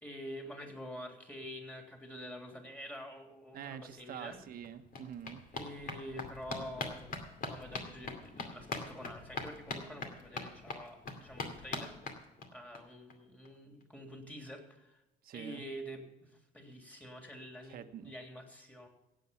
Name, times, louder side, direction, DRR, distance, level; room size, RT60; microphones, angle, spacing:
voice 1, 0.0-4.4 5.5-7.2 7.4-12.2 12.5-15.0 15.3-18.9, equal, 10° left, 3 dB, 3.2 m, -47 dB
voice 2, 3.5-5.4 15.2-15.6 17.7-18.1, right 9 dB, 60° right, 9 dB, 1.1 m, -46 dB
sound 1, 4.0-4.1 4.3-12.8 13.1-13.2 13.5-13.6 13.8-13.9, left 3 dB, 55° left, 2.4 m, -43 dB
16.5 x 8.4 x 5.8 m, 0.97 s
cardioid pair, 110°, 17 cm